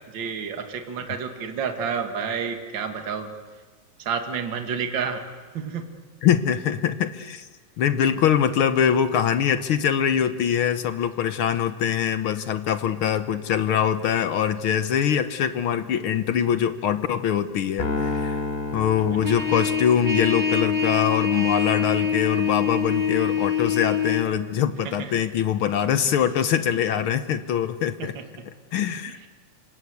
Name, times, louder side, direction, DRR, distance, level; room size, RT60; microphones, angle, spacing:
voice 1, 0.1-3.3 4.0-5.2 5.5-5.9 24.8-25.2 28.0-28.5, right 6 dB, 45° right, 6 dB, 2.4 m, -30 dB
voice 2, 6.2-7.4 7.8-18.4 18.7-28.1 28.7-29.2, left 9 dB, 65° left, 11 dB, 1.4 m, -23 dB
Piano, 17.8-20.2, left 3 dB, 20° left, 3.8 m, -30 dB
Trumpet, 19.2-24.3, left 6 dB, 10° right, 1.1 m, -24 dB
27.0 x 26.0 x 8.2 m, 1.4 s
omnidirectional pair, 3.3 m